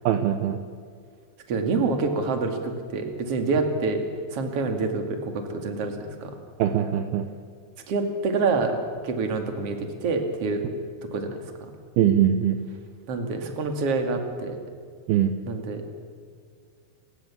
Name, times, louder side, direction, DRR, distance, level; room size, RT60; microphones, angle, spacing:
voice 1, 0.1-0.6 6.6-7.3 12.0-12.6 15.1-15.3, right 10 dB, 80° right, 8 dB, 2.2 m, -21 dB
voice 2, 1.5-4.0 4.3-6.3 7.9-8.8 9.0-10.7 11.0-11.7 13.1-14.6 15.5-15.8, right 3 dB, 40° right, 5 dB, 2.3 m, -27 dB
29.5 x 16.5 x 7.3 m, 2.1 s
omnidirectional pair, 5.7 m